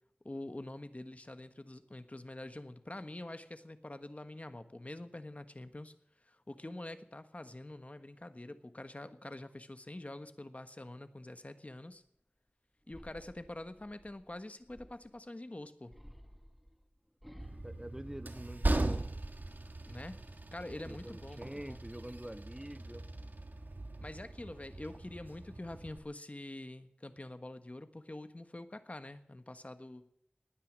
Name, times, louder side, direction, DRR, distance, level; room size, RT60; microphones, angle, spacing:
voice 1, 0.2-5.9 6.2-12.0 12.9-16.0 19.9-20.2 20.5-21.8 24.0-30.1, left 1 dB, 40° left, 10 dB, 1.4 m, -46 dB
sound 1, 12.9-15.3 15.9-18.9 19.4-19.9, equal, ahead, 1.6 m, -56 dB
Train, 17.4-26.0, right 2 dB, 60° right, 1.5 m, -39 dB
voice 2, 17.6-19.0 20.9-23.1, right 1 dB, 15° right, 12 dB, 0.7 m, -46 dB
19.0 x 9.6 x 7.4 m, 0.74 s
wide cardioid pair, 50°, 4 cm